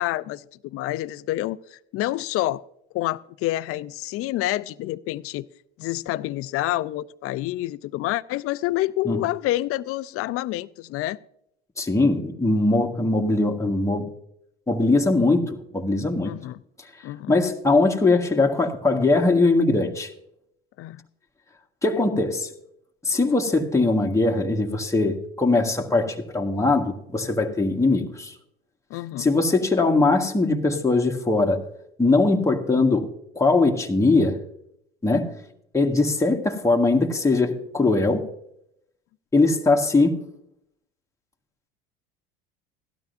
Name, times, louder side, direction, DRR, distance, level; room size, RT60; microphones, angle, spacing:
voice 1, 0.0-2.6 2.9-5.5 5.8-11.2 16.2-16.6 17.0-17.3 20.8-21.0 28.9-29.3, left 16 dB, 50° left, 0.5 m, -28 dB
voice 2, 11.8-14.1 14.7-16.3 17.3-20.1 21.8-22.5 23.0-28.3 29.2-31.6 32.0-33.1 33.3-34.4 35.0-35.3 35.7-38.3 39.3-40.2, left 3 dB, 10° left, 1.5 m, -21 dB
17.0 x 12.5 x 2.6 m
hypercardioid pair, 80°, 30 cm